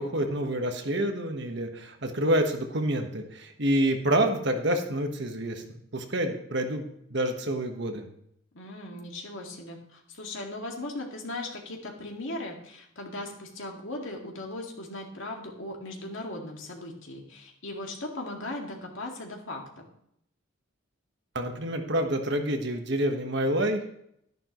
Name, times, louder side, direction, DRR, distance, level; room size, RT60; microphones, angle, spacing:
voice 1, 0.0-6.8 7.1-8.1 21.3-23.9, right 1 dB, 55° right, 5 dB, 1.3 m, -28 dB
voice 2, 8.5-19.8, left 2 dB, 70° left, 1 dB, 2.1 m, -38 dB
11.5 x 10.5 x 3.1 m, 0.73 s
head